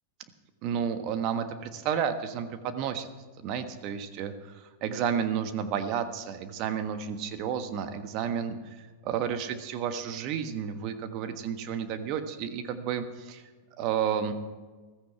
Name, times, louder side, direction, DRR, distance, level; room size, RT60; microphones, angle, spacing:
voice 1, 0.6-3.1 3.4-13.4 13.8-14.3, right 8 dB, 45° right, 8 dB, 1.4 m, -31 dB
15.0 x 14.0 x 4.7 m, 1.4 s
hypercardioid pair, 100°, 0 cm